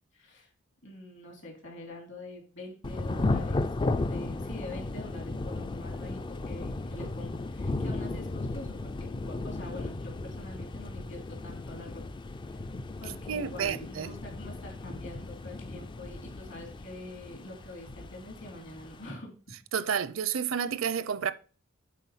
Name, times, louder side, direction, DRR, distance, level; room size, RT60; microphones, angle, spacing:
voice 1, 0.1-0.5 0.8-3.7 3.9-6.2 6.5-12.0 12.4-12.7 13.0-19.3, left 1 dB, 60° left, 3.2 m, -45 dB
Thunder / Rain, 2.8-19.1, left 2 dB, 25° left, 0.3 m, -35 dB
voice 2, 13.3-14.1 19.7-21.3, right 7 dB, 70° right, 0.5 m, -30 dB
8.4 x 4.2 x 5.5 m
head